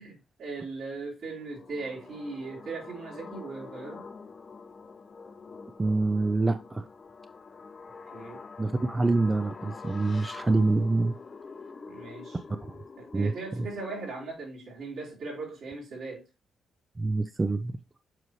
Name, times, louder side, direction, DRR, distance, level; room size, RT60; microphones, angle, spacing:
voice 1, 0.0-4.0 8.1-8.4 11.9-12.4 13.0-16.3, right 3 dB, 75° right, 4.3 m, -39 dB
sound 1, 1.2-14.3, left 4 dB, 45° left, 0.8 m, -46 dB
voice 2, 5.8-6.8 8.6-11.1 13.1-13.3 17.0-17.8, right 3 dB, 25° right, 0.5 m, -26 dB
7.7 x 4.7 x 3.1 m
supercardioid pair, 65°, 0 cm